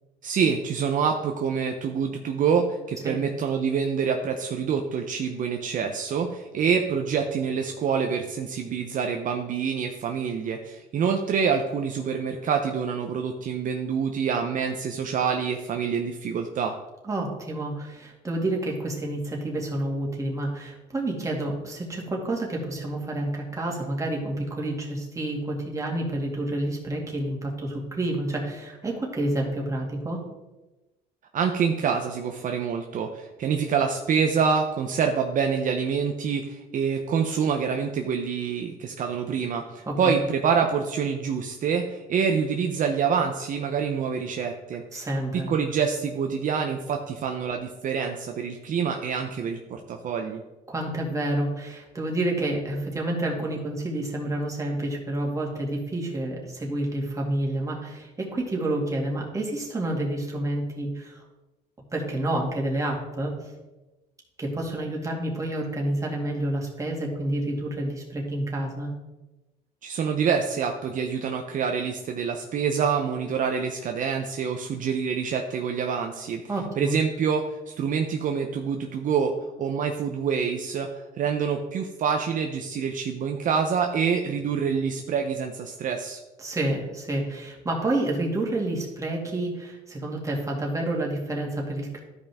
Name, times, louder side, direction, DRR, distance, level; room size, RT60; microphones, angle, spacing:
voice 1, 0.2-16.8 31.3-45.1 45.5-50.4 69.8-76.4 76.8-79.3 79.6-86.2, right 6 dB, 50° right, 4 dB, 0.7 m, -26 dB
voice 2, 17.0-30.2 39.9-40.2 44.9-45.5 50.7-61.2 61.9-63.5 64.4-68.9 76.5-76.9 86.4-92.0, right 1 dB, 20° right, -1 dB, 2.2 m, -29 dB
12.5 x 5.3 x 3.5 m, 1.1 s
cardioid pair, 110°, 17 cm